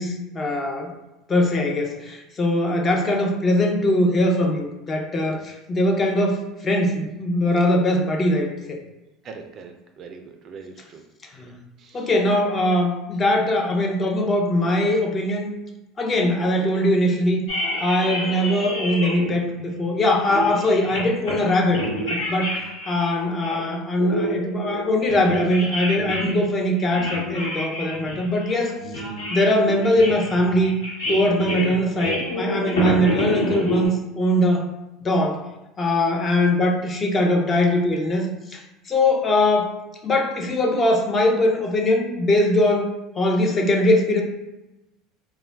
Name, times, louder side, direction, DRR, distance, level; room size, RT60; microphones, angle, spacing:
voice 1, 0.0-0.9 1.3-8.8 11.4-11.5 11.9-15.5 16.0-17.4 17.8-21.8 22.1-22.6 22.9-28.8 29.3-30.8 31.1-34.7 35.0-35.4 35.8-38.6 38.9-39.7 40.0-44.2, left 1 dB, 30° left, 1 dB, 0.6 m, -21 dB
voice 2, 9.2-11.0 11.8-12.0, right 5 dB, 45° right, 5 dB, 0.4 m, -41 dB
sound 1, 17.5-19.3 19.7-19.8 20.2-21.4 21.6-23.6 24.0-26.4 26.8-33.9, left 1 dB, 85° left, 1.3 m, -28 dB
2.2 x 2.2 x 3.3 m, 0.97 s
hypercardioid pair, 90°, 0 cm